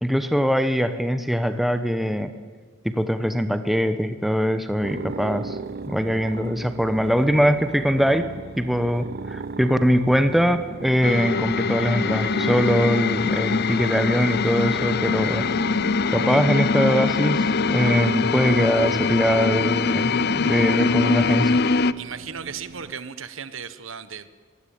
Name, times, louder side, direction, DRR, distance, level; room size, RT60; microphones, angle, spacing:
voice 1, 0.0-2.3 2.8-5.6 5.9-8.3 8.6-15.4 16.1-21.5, equal, ahead, 9 dB, 1.0 m, -22 dB
sound 1, 4.8-22.9, right 3 dB, 50° right, 0.6 m, -38 dB
sound 2, 11.0-21.9, left 4 dB, 50° left, 0.6 m, -23 dB
voice 2, 22.0-24.3, right 7 dB, 70° right, 13 dB, 1.1 m, -36 dB
23.0 x 16.5 x 8.8 m, 1.5 s
head